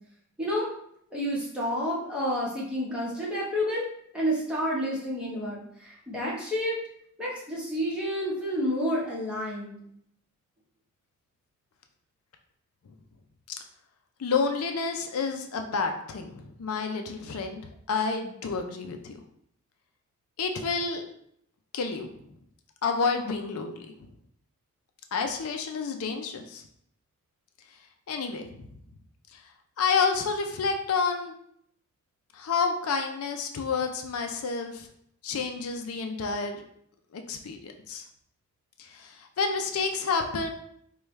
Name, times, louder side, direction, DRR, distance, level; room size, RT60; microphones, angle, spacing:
voice 1, 1.1-3.8 4.1-6.8 7.2-9.7, equal, 5° right, -6 dB, 1.0 m, -29 dB
voice 2, 14.2-17.6 17.9-19.1 20.4-21.1 21.7-22.1 22.8-24.1 25.1-26.6 28.1-28.7 29.8-31.3 32.3-34.9 35.2-36.6 37.1-38.0 38.8-40.5, left 5 dB, 80° left, 5 dB, 0.4 m, -29 dB
4.6 x 2.3 x 3.1 m, 0.69 s
head